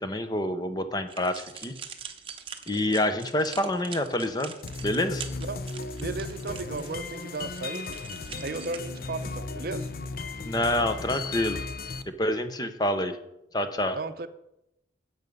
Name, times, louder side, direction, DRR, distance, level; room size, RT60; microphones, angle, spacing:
voice 1, 0.0-1.7 2.7-4.5 4.8-5.2 10.4-11.6 12.2-13.2 13.5-14.0, left 1 dB, 20° left, 9 dB, 0.8 m, -27 dB
sound 1, 1.1-8.8, right 7 dB, 30° right, 0.9 m, -43 dB
sound 2, 4.6-12.0, left 3 dB, 55° left, 0.6 m, -36 dB
voice 2, 6.0-8.0 8.4-9.9 13.9-14.3, right 3 dB, 55° right, 11 dB, 0.6 m, -35 dB
11.0 x 8.1 x 5.4 m, 0.85 s
head